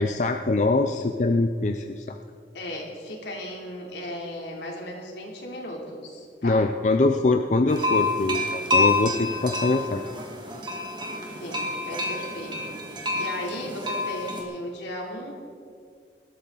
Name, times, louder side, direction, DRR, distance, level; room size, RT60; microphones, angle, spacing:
voice 1, 0.0-2.2 6.4-10.0, left 2 dB, 40° left, 6 dB, 0.5 m, -23 dB
voice 2, 2.5-6.7 11.4-15.3, equal, 80° left, -1 dB, 3.2 m, -36 dB
sound 1, 7.7-14.4, left 2 dB, 25° right, 1.9 m, -28 dB
20.5 x 13.5 x 4.0 m, 2.2 s
head